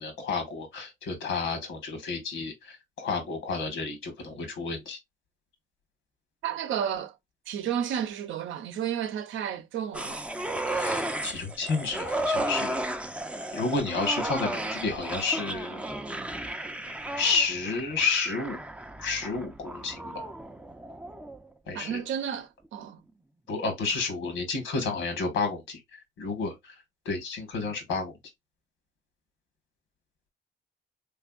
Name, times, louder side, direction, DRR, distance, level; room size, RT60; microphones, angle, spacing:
voice 1, 0.0-5.0 10.7-12.8 13.5-15.8 17.2-18.6 19.0-20.3 21.7-22.0 23.5-28.2, left 4 dB, 85° left, 1.5 m, -31 dB
voice 2, 6.4-7.1 7.5-10.2 21.7-23.0, right 9 dB, 75° right, 0.7 m, -32 dB
sound 1, 9.9-21.5 21.8-21.9, right 1 dB, 5° right, 0.4 m, -34 dB
3.5 x 3.3 x 2.3 m
cardioid pair, 90°, 20 cm